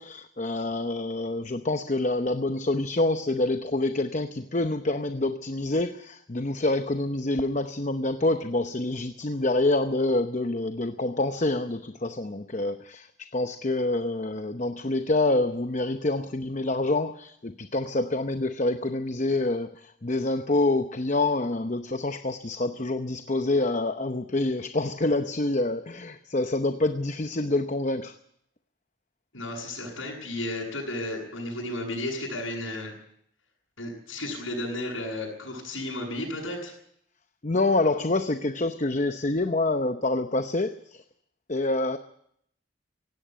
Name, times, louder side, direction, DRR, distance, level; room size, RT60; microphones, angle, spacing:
voice 1, 0.0-28.1 37.4-41.0 41.5-42.0, left 2 dB, 35° left, 9 dB, 0.8 m, -27 dB
voice 2, 29.3-32.9 33.8-36.7, left 1 dB, 80° left, -2 dB, 7.9 m, -33 dB
17.0 x 16.5 x 9.3 m, 0.71 s
head